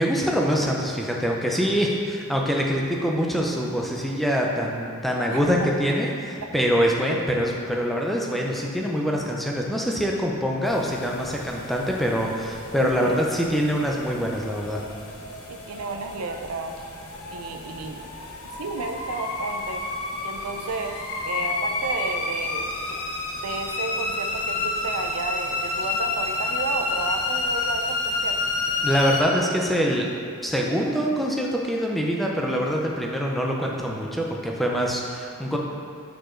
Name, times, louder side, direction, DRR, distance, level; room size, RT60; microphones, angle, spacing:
voice 1, 0.0-14.8 28.8-30.1 30.4-35.6, equal, ahead, -2 dB, 0.4 m, -24 dB
voice 2, 5.3-6.0 6.5-6.6 12.8-13.2 15.5-16.8 17.3-18.0 18.6-19.8 20.2-22.7 23.4-28.3 35.5-35.6, right 3 dB, 90° right, 5 dB, 0.5 m, -32 dB
sound 1, 10.6-29.2, left 3 dB, 85° left, 0.8 m, -30 dB
4.8 x 4.7 x 4.4 m, 2.2 s
head